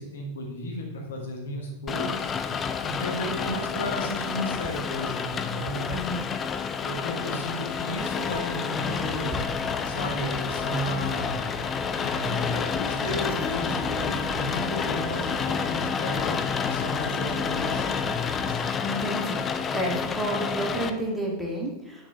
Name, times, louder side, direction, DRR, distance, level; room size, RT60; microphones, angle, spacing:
voice 1, 0.0-2.3 2.8-6.0 6.8-9.4 9.8-11.4 12.0-16.4 16.6-18.7, left 1 dB, 65° left, 0 dB, 1.7 m, -33 dB
Rain, 1.9-20.9, left 6 dB, 20° left, 0.5 m, -29 dB
voice 2, 5.8-6.3 18.8-19.5 19.7-22.1, right 1 dB, ahead, -3 dB, 1.8 m, -30 dB
sound 1, 8.8-18.5, right 2 dB, 30° right, 1.0 m, -41 dB
9.1 x 6.4 x 3.4 m, 1.1 s
figure-of-eight pair, 90°, 0 cm